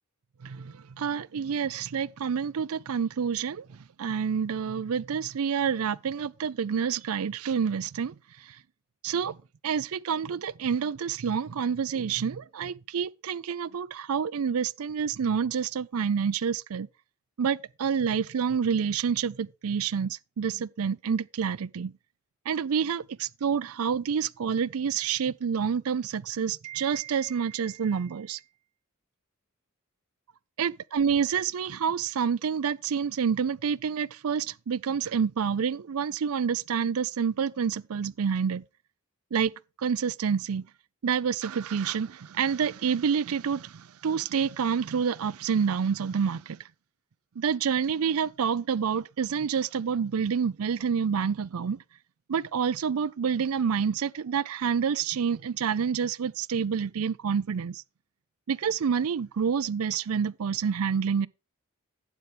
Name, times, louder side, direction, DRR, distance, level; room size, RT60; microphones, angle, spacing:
voice 1, 0.4-8.6 9.0-9.4 9.6-16.9 17.4-21.9 22.5-28.4 30.6-38.6 39.3-39.5 39.8-40.6 41.0-46.6 47.4-51.8 52.3-57.8 58.5-61.3, right 6 dB, 80° right, 0.5 m, -28 dB
12.0 x 8.1 x 3.4 m
head